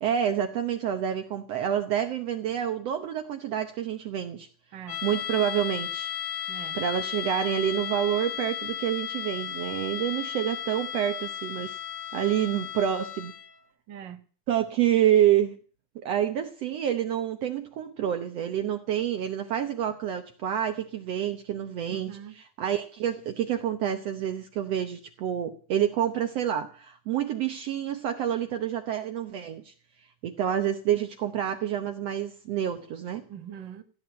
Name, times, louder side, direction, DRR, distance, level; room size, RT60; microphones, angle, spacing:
voice 1, 0.0-4.5 5.0-6.1 6.8-11.8 12.1-13.3 14.5-15.6 16.0-29.7 30.2-33.2, right 10 dB, 65° right, 1.9 m, -28 dB
voice 2, 4.7-5.0 6.5-6.8 13.9-14.2 21.9-22.4 33.2-33.8, right 9 dB, 45° right, 1.7 m, -42 dB
sound 1, 4.9-13.6, left 10 dB, 90° left, 4.5 m, -35 dB
16.5 x 8.6 x 9.2 m
omnidirectional pair, 3.5 m